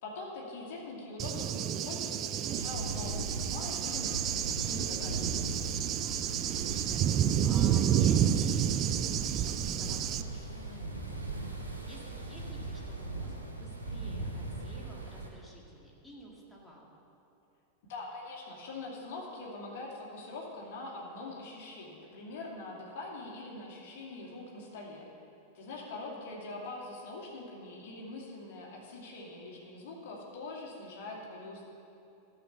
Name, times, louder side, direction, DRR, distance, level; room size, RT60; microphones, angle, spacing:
voice 1, 0.0-5.3 17.9-25.1 25.5-31.7, left 2 dB, 55° left, -2 dB, 2.5 m, -43 dB
Cricket / Thunder, 1.2-10.2, right 10 dB, 35° right, 0.4 m, -30 dB
sound 1, 2.5-15.3, right 2 dB, 85° right, 1.3 m, -39 dB
voice 2, 6.5-16.8 25.9-26.3, equal, 5° left, -4 dB, 2.1 m, -52 dB
12.5 x 6.7 x 6.8 m, 2.8 s
figure-of-eight pair, 90°, 0 cm